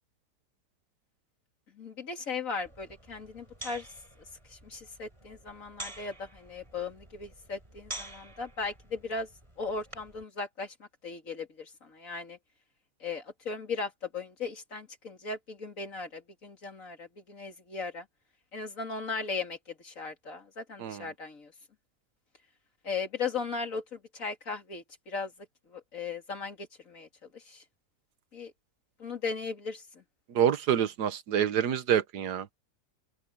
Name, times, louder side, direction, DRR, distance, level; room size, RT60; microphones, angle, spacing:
voice 1, 1.8-3.9 4.5-9.3 9.6-10.7 11.0-12.4 13.0-18.0 18.5-21.5 22.8-25.3 25.7-27.1 27.3-27.6 28.3-28.5 29.0-30.0, left 4 dB, 55° left, 3.3 m, -37 dB
sound 1, 2.7-10.2, right 1 dB, 20° right, 4.6 m, -48 dB
voice 2, 30.3-32.5, right 9 dB, 85° right, 1.6 m, -27 dB
open air
omnidirectional pair, 1.7 m